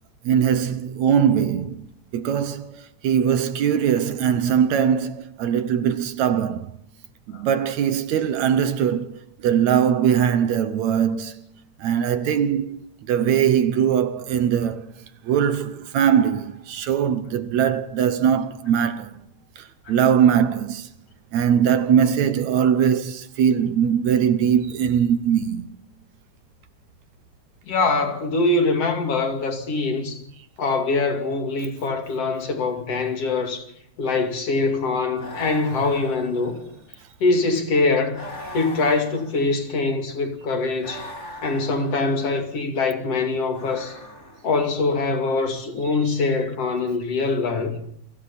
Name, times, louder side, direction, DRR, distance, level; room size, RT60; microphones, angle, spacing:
voice 1, 0.3-1.9 2.1-6.7 7.3-11.4 11.8-12.8 13.1-14.8 15.2-19.1 19.9-20.9 21.3-25.7, right 8 dB, 70° right, 2.1 m, -21 dB
voice 2, 27.7-30.2 30.6-33.6 34.0-36.5 37.2-38.2 38.5-41.1 41.4-43.9 44.4-47.8, left 3 dB, 50° left, 3.4 m, -23 dB
sound 1, 35.2-36.9 38.1-39.7 40.8-42.1 43.5-44.6, left 1 dB, 20° left, 3.5 m, -39 dB
29.0 x 23.0 x 4.2 m
omnidirectional pair, 3.6 m